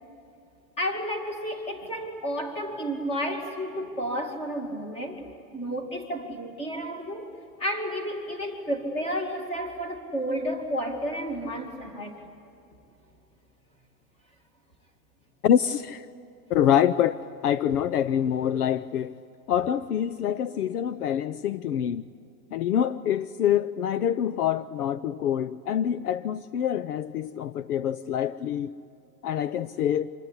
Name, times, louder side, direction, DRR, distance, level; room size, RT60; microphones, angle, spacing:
voice 1, 0.8-5.2 5.5-12.2, equal, 10° left, 2.2 m, -31 dB
voice 2, 15.4-16.1 16.5-19.1 19.5-22.0 22.5-28.7 29.2-30.1, left 9 dB, 65° left, 0.8 m, -26 dB
26.0 x 21.0 x 9.8 m
supercardioid pair, 165°, 49 cm